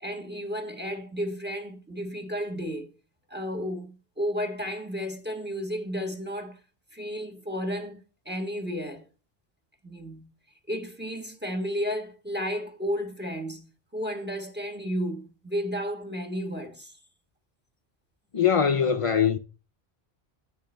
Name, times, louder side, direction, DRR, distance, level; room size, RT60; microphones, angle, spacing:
voice 1, 0.0-2.9 3.3-6.6 6.9-9.0 9.8-10.3 10.7-17.0, equal, 10° right, 1.2 m, -33 dB
voice 2, 18.3-19.4, left 7 dB, 50° left, 0.4 m, -22 dB
10.5 x 8.3 x 3.3 m
omnidirectional pair, 1.1 m